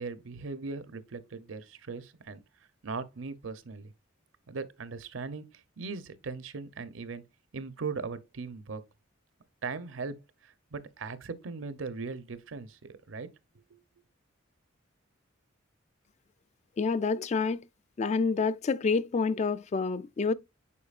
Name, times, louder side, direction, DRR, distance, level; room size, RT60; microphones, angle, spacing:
voice 1, 0.0-2.4 2.8-3.9 4.5-5.5 5.8-7.2 7.5-8.8 9.6-10.2 10.4-12.8 13.1-13.3 13.7-13.8, right 4 dB, 75° right, 0.7 m, -39 dB
voice 2, 16.8-17.6 18.0-20.3, left 4 dB, 35° left, 0.3 m, -28 dB
8.4 x 4.7 x 2.4 m
head